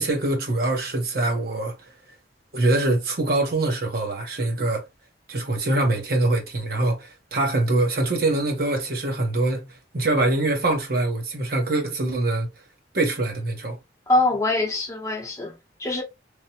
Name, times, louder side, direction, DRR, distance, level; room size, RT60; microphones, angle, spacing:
voice 1, 0.0-1.7 2.5-4.9 5.3-12.5 12.9-13.8, right 2 dB, 55° right, 0.9 m, -24 dB
voice 2, 14.1-16.0, left 2 dB, 20° left, 0.8 m, -24 dB
3.3 x 2.2 x 2.7 m
head